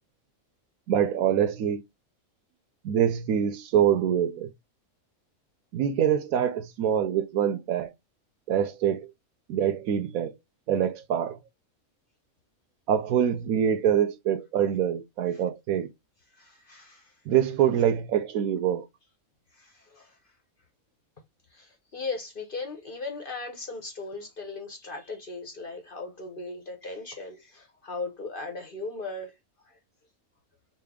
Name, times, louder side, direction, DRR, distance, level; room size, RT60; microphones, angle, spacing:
voice 1, 0.9-1.8 2.8-4.5 5.7-7.9 8.5-9.1 9.5-10.3 10.7-11.4 12.9-15.9 17.3-18.8, right 9 dB, 80° right, 1.1 m, -25 dB
voice 2, 16.4-17.0 19.6-20.1 21.5-29.3, left 3 dB, 45° left, 0.8 m, -37 dB
4.2 x 2.0 x 3.4 m
omnidirectional pair, 1.5 m